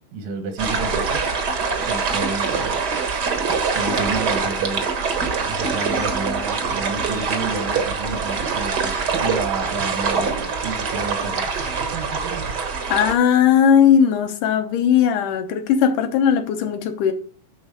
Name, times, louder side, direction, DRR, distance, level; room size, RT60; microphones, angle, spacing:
voice 1, 0.1-1.2 1.9-2.8 3.7-11.7, right 3 dB, 75° right, 2.9 m, -31 dB
sound 1, 0.6-13.1, right 5 dB, 55° right, 1.1 m, -24 dB
voice 2, 12.9-17.1, left 8 dB, 75° left, 2.5 m, -18 dB
10.5 x 3.9 x 6.7 m
omnidirectional pair, 3.8 m